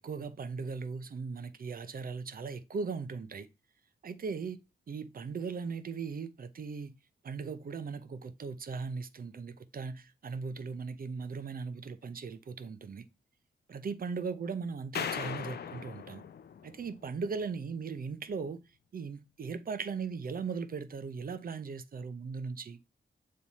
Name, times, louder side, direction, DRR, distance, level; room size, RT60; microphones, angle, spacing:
voice 1, 0.0-3.5 4.0-4.6 4.9-6.9 7.2-13.1 13.7-16.2 16.6-18.6 18.9-22.8, right 5 dB, 55° right, 0.7 m, -38 dB
sound 1, 14.9-17.3, left 7 dB, 65° left, 0.5 m, -39 dB
7.4 x 3.2 x 4.1 m
cardioid pair, 80°, 18 cm